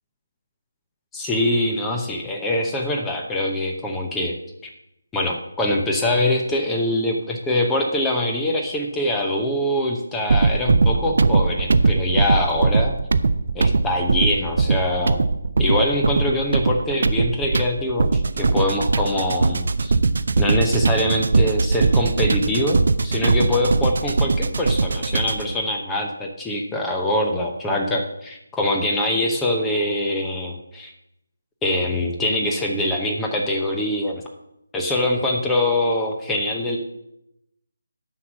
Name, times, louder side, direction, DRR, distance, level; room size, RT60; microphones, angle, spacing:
voice 1, 1.1-4.4 4.6-4.7 5.1-13.0 13.5-15.2 15.6-19.9 20.4-30.9 31.6-34.2 34.7-36.8, left 1 dB, 10° left, 1 dB, 0.8 m, -23 dB
sound 1, 10.3-25.5, right 3 dB, 50° right, 0.5 m, -20 dB
9.6 x 5.9 x 6.3 m, 0.83 s
figure-of-eight pair, 150°, 0 cm